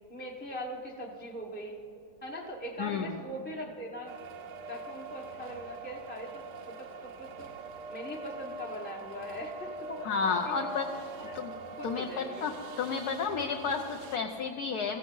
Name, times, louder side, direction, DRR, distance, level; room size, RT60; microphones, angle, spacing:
voice 1, 0.1-1.8 2.2-4.1 4.7-7.5 7.9-10.6 11.2-11.4 11.8-12.5, equal, 10° left, -2 dB, 0.7 m, -41 dB
sound 1, 4.1-14.2, right 4 dB, 65° right, 1.2 m, -43 dB
voice 2, 10.0-10.9 11.3-11.5 11.8-15.0, left 5 dB, 60° left, 3 dB, 1.1 m, -32 dB
22.5 x 15.0 x 3.9 m, 2.6 s
omnidirectional pair, 2.1 m